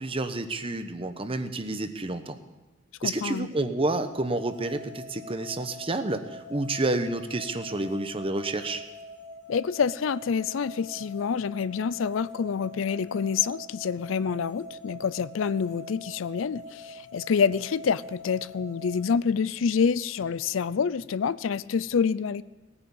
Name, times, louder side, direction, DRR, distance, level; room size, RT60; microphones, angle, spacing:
voice 1, 0.0-2.4 3.0-8.8, right 2 dB, 30° right, 10 dB, 0.9 m, -29 dB
voice 2, 3.0-3.5 9.5-22.4, left 6 dB, 80° left, 18 dB, 0.4 m, -27 dB
sound 1, 3.9-19.1, left 1 dB, 60° right, 2.7 m, -44 dB
18.0 x 9.8 x 7.1 m, 1.1 s
head